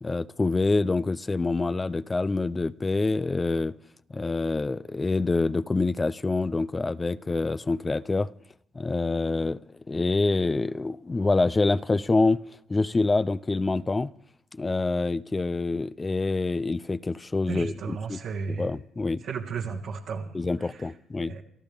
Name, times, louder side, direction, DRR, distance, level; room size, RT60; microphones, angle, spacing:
voice 1, 0.0-3.7 4.1-8.3 8.7-9.6 9.9-12.4 12.7-14.1 14.5-18.2 18.6-19.2 20.3-21.3, left 3 dB, 25° left, 0.5 m, -26 dB
voice 2, 17.5-18.7 19.2-20.9 21.3-21.4, right 5 dB, 75° right, 1.9 m, -34 dB
28.0 x 13.5 x 3.5 m
cardioid pair, 80°, 0 cm